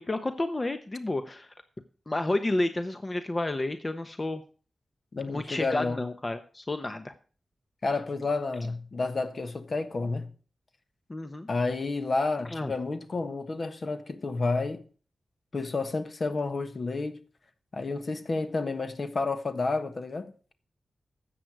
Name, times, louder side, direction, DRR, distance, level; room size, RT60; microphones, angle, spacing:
voice 1, 0.0-1.5 2.1-4.4 5.3-7.1 11.1-11.5 12.5-12.7, left 2 dB, 30° left, 1.0 m, -30 dB
voice 2, 5.1-6.0 7.8-10.3 11.5-14.8 15.5-17.2 17.7-20.5, left 3 dB, 55° left, 1.4 m, -30 dB
13.0 x 8.0 x 4.8 m
cardioid pair, 50°, 0 cm